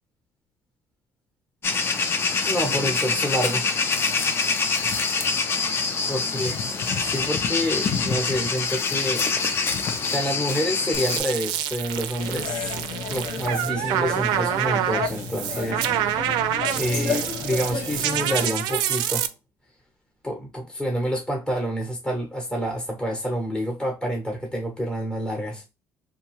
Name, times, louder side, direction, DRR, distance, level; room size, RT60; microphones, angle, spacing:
sound 1, 1.6-11.2, left 4 dB, 35° left, 0.4 m, -25 dB
voice 1, 2.5-3.9 6.1-6.5 7.0-9.3 10.1-16.2 16.7-19.3 20.2-25.6, equal, 10° left, 0.8 m, -28 dB
sound 2, 10.9-19.3, right 11 dB, 80° right, 0.4 m, -27 dB
sound 3, 12.2-18.5, left 4 dB, 65° left, 1.4 m, -32 dB
2.7 x 2.2 x 3.0 m
cardioid pair, 135°, 7 cm